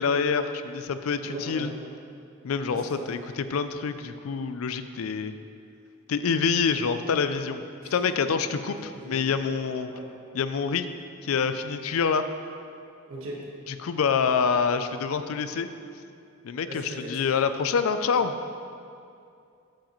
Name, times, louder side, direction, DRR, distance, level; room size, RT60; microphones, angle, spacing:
voice 1, 0.0-1.7 2.4-5.3 6.1-7.6 7.9-8.8 9.1-9.9 10.3-10.9 11.2-12.2 13.8-15.7 16.4-18.3, left 6 dB, 75° left, 10 dB, 0.4 m, -26 dB
voice 2, 1.2-1.7 2.7-3.1 7.8-8.0 8.9-9.2 9.9-10.1 13.1-13.4 16.7-17.2, right 1 dB, 70° right, -3 dB, 1.5 m, -38 dB
8.9 x 7.2 x 3.0 m, 2.5 s
head